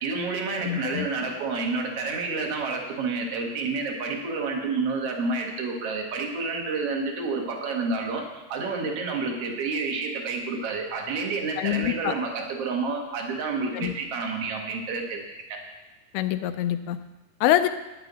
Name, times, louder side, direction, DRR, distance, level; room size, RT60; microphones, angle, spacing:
voice 1, 0.0-8.2 8.5-15.6, right 4 dB, 50° right, 1 dB, 2.1 m, -29 dB
voice 2, 0.7-1.1 11.6-12.1 13.7-13.9 16.1-17.0 17.4-17.7, left 12 dB, 85° left, 9 dB, 2.5 m, -25 dB
13.5 x 10.5 x 4.0 m, 1.1 s
omnidirectional pair, 4.4 m